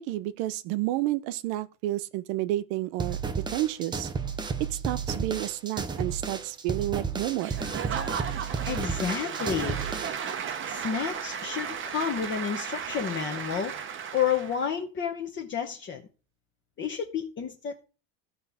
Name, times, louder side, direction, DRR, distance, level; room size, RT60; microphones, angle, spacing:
voice 1, 0.0-3.2 3.5-4.1 4.7-7.5, right 15 dB, 65° right, 0.9 m, -30 dB
sound 1, 3.0-10.3, right 5 dB, 10° right, 0.4 m, -33 dB
Applause / Crowd, 7.4-14.7, right 7 dB, 30° right, 0.8 m, -35 dB
voice 2, 8.7-9.8 10.7-13.7 14.1-16.0 16.8-17.8, left 7 dB, 25° left, 0.9 m, -30 dB
15.5 x 5.5 x 3.5 m
cardioid pair, 150°, 42 cm